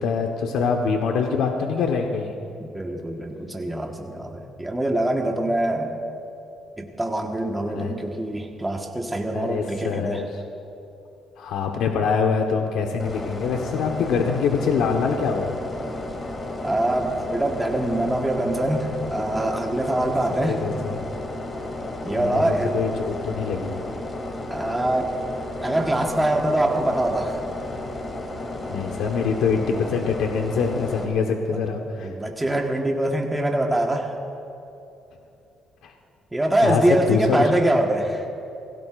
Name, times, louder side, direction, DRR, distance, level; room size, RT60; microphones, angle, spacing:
voice 1, 0.0-2.3 7.7-7.9 9.3-10.3 11.4-15.6 20.0-21.0 22.2-23.7 28.7-32.1 35.8-35.9 36.6-36.8 37.1-37.5, left 5 dB, 90° left, 2 dB, 1.2 m, -24 dB
voice 2, 2.6-6.0 6.8-10.2 16.6-20.6 22.0-22.8 24.5-25.2 25.6-27.4 31.5-31.6 32.0-34.2 36.3-38.3, right 1 dB, 10° right, 1 dB, 1.4 m, -24 dB
sound 1, 13.0-31.0, left 2 dB, 35° left, 2.6 m, -33 dB
27.5 x 17.5 x 2.5 m, 2.8 s
cardioid pair, 90°, 0 cm